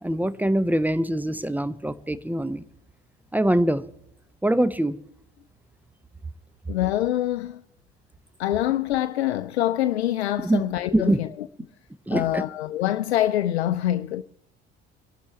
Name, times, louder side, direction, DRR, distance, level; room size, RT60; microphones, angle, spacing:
voice 1, 0.0-2.6 3.3-3.8 4.4-5.0 10.4-10.6 10.9-11.2 12.1-12.4, right 1 dB, 5° right, 0.7 m, -23 dB
voice 2, 6.7-7.6 8.4-11.3 12.1-14.2, left 13 dB, 75° left, 0.5 m, -25 dB
22.5 x 11.5 x 3.2 m
figure-of-eight pair, 55°, 33 cm